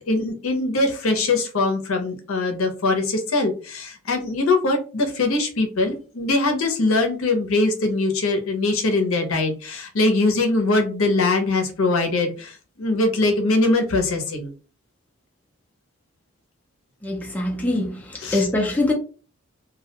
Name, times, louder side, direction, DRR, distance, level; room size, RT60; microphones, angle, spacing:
voice 1, 0.1-14.5 18.2-18.4, left 2 dB, 70° left, 0.6 m, -22 dB
voice 2, 17.0-18.9, left 2 dB, 10° left, 0.4 m, -23 dB
2.3 x 2.1 x 2.7 m
head